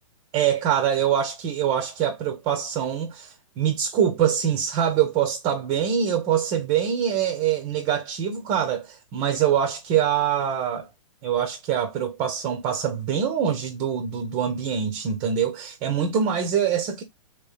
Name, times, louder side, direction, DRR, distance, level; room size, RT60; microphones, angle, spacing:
voice 1, 0.3-10.9 11.2-17.0, right 8 dB, 30° right, 0.6 m, -24 dB
3.0 x 2.8 x 3.3 m
hypercardioid pair, 130°, 18 cm